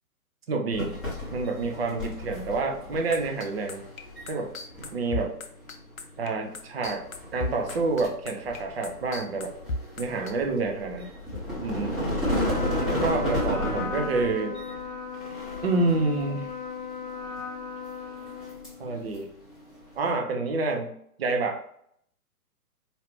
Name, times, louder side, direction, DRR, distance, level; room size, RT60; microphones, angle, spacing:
voice 1, 0.5-1.0 1.3-3.8 4.3-4.5 4.9-5.3 6.2-7.0 7.3-9.5 10.0-11.1 11.6-12.0 12.8-14.6 15.6-16.5 18.8-19.3 19.9-21.6, right 3 dB, 40° right, 2 dB, 0.8 m, -28 dB
sound 1, 0.7-20.1, left 1 dB, ahead, 0.8 m, -34 dB
sound 2, 3.1-10.3, left 2 dB, 60° left, 0.8 m, -34 dB
Trumpet, 12.2-19.0, left 6 dB, 30° left, 0.5 m, -36 dB
4.5 x 2.9 x 3.2 m, 0.68 s
figure-of-eight pair, 125°, 45 cm